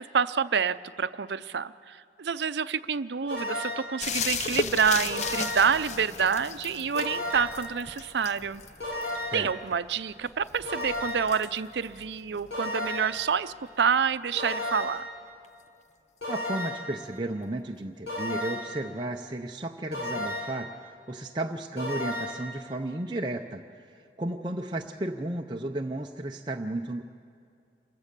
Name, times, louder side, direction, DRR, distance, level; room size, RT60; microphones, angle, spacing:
voice 1, 0.0-8.6 9.3-15.1, right 6 dB, 80° right, 14 dB, 0.5 m, -28 dB
sound 1, 3.3-4.0 5.1-5.8 7.0-7.7 8.8-9.5 10.7-11.4 12.5-13.2 14.4-15.1 16.2-17.0 18.1-18.8 19.9-20.7 21.8-22.5, left 1 dB, 85° left, 5.8 m, -33 dB
sound 2, 4.0-13.4 15.4-15.5, left 5 dB, 40° left, 0.6 m, -36 dB
voice 2, 16.3-23.6 23.9-27.0, right 1 dB, 25° right, 2 dB, 0.6 m, -33 dB
27.0 x 15.5 x 6.8 m, 2.4 s
head